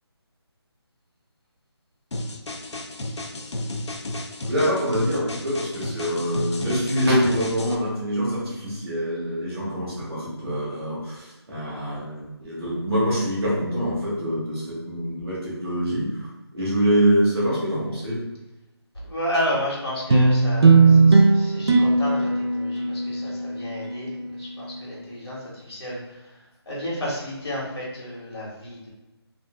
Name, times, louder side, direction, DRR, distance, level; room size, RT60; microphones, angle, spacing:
sound 1, 2.1-7.7, left 1 dB, 90° left, 0.5 m, -33 dB
voice 1, 4.5-16.3 16.5-18.2, equal, 5° right, -10 dB, 0.6 m, -25 dB
voice 2, 19.0-26.0 26.7-28.9, equal, 70° left, -5 dB, 1.4 m, -31 dB
sound 2, 20.1-24.7, right 3 dB, 70° right, 0.4 m, -18 dB
2.5 x 2.2 x 3.3 m, 1.0 s
figure-of-eight pair, 180°, 14 cm